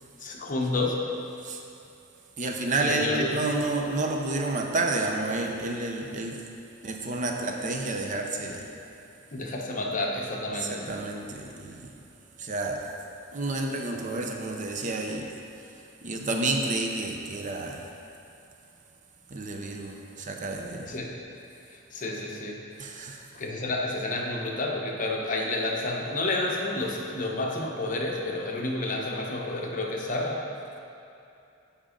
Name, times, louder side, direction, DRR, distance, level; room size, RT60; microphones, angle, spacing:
voice 1, 0.2-1.0 2.8-3.4 9.3-10.9 20.9-21.1 21.9-22.6 23.3-30.5, left 2 dB, 40° left, 0 dB, 0.9 m, -30 dB
voice 2, 2.4-6.4 6.8-8.7 10.5-12.0 12.4-12.9 13.3-15.7 16.0-17.9 19.3-21.0 22.8-23.2, right 2 dB, 40° right, 2 dB, 0.6 m, -30 dB
7.6 x 5.0 x 5.1 m, 2.6 s
head